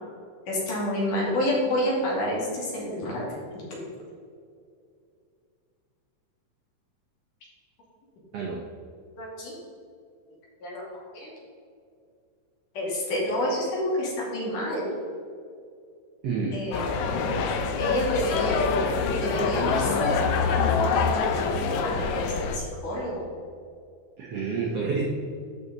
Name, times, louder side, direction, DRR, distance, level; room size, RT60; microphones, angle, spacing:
voice 1, 0.5-3.3 3.7-3.8 9.2-9.6 10.6-10.8 11.1-11.3 12.7-14.9 16.5-17.2 17.8-18.7 19.1-20.8 21.8-23.3, left 1 dB, 60° left, -5 dB, 3.9 m, -29 dB
voice 2, 8.3-8.6 16.2-16.6 24.2-25.0, right 5 dB, 85° right, -1 dB, 1.3 m, -29 dB
sound 1, 16.7-22.6, left 5 dB, 80° left, 1.7 m, -25 dB
13.0 x 5.5 x 4.0 m, 2.3 s
omnidirectional pair, 4.2 m